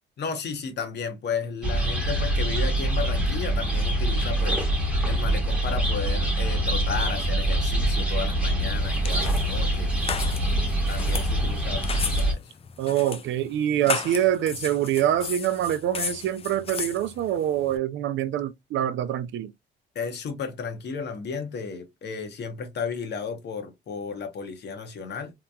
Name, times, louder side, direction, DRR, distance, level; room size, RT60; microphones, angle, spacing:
voice 1, 0.2-4.7 5.0-10.0 10.9-12.5 19.9-25.3, left 5 dB, 60° left, 0.8 m, -33 dB
sound 1, 1.6-12.3, right 1 dB, 5° right, 1.0 m, -24 dB
sound 2, 8.6-17.8, left 6 dB, 30° left, 0.4 m, -35 dB
voice 2, 12.8-19.5, right 11 dB, 70° right, 0.4 m, -25 dB
2.9 x 2.2 x 2.3 m
cardioid pair, 90°, 20 cm